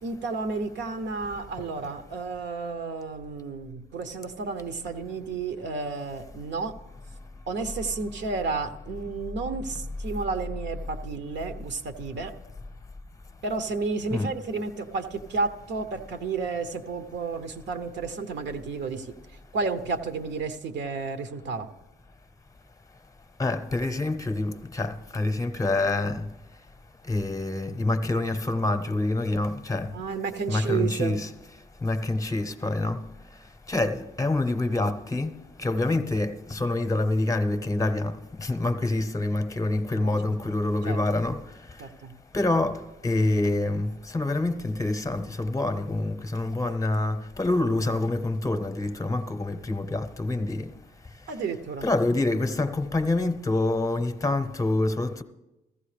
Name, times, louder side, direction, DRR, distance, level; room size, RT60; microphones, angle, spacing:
voice 1, 0.0-6.7 7.5-12.3 13.4-19.1 19.5-21.7 29.9-31.2 40.0-40.1 40.9-41.2 41.8-42.1 51.3-51.9, right 4 dB, 65° right, 0.9 m, -32 dB
voice 2, 23.4-26.3 27.1-29.9 30.5-31.3 31.8-33.0 33.7-35.3 35.6-41.4 42.3-50.7 51.8-55.2, left 2 dB, 15° left, 0.8 m, -26 dB
15.0 x 14.5 x 3.3 m
cardioid pair, 90°, 20 cm